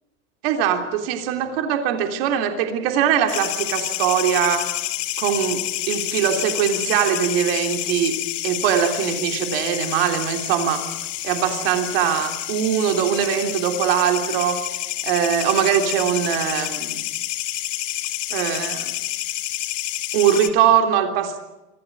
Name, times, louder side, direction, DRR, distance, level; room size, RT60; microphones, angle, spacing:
voice 1, 0.4-4.7 5.2-8.1 8.4-10.8 11.2-14.6 15.0-17.0 18.3-18.9 20.1-21.4, right 9 dB, 50° right, 5 dB, 3.3 m, -21 dB
sound 1, 3.3-20.5, left 14 dB, 80° left, 2.3 m, -29 dB
25.5 x 16.0 x 9.7 m, 0.99 s
supercardioid pair, 175°, 37 cm